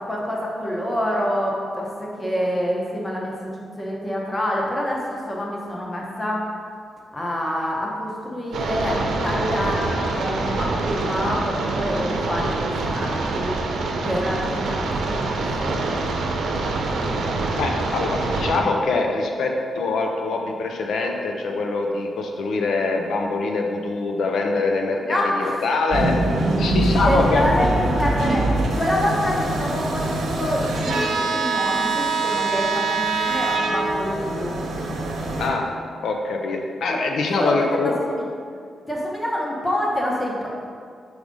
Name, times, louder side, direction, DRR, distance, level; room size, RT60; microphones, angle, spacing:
voice 1, 0.0-3.4 3.8-6.5 7.1-13.6 14.0-15.3 15.6-15.8 25.0-25.6 27.0-28.5 28.7-34.6 36.9-37.0 37.4-38.3 38.9-40.5, equal, 15° left, -3 dB, 1.0 m, -26 dB
sound 1, 8.5-18.6, right 3 dB, 90° right, 0.7 m, -25 dB
voice 2, 17.5-26.2 26.6-27.5 35.4-35.7 36.0-37.9, left 3 dB, 75° left, 2 dB, 0.6 m, -24 dB
sound 2, 25.9-35.5, right 2 dB, 70° right, 1.0 m, -23 dB
4.8 x 4.8 x 5.3 m, 2.2 s
wide cardioid pair, 160°, 0 cm